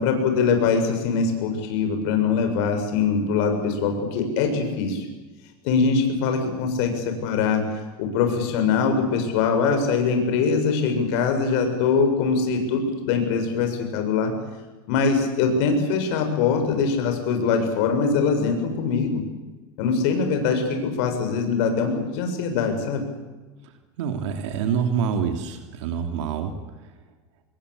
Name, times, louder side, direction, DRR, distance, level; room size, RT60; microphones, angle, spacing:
voice 1, 0.0-5.1 5.6-7.6 8.0-14.3 14.9-19.2 19.8-23.1, left 5 dB, 65° left, 5 dB, 7.5 m, -22 dB
voice 2, 24.0-26.5, right 7 dB, 80° right, 6 dB, 3.1 m, -26 dB
27.0 x 21.5 x 8.5 m, 1.2 s
supercardioid pair, 150°, 15 cm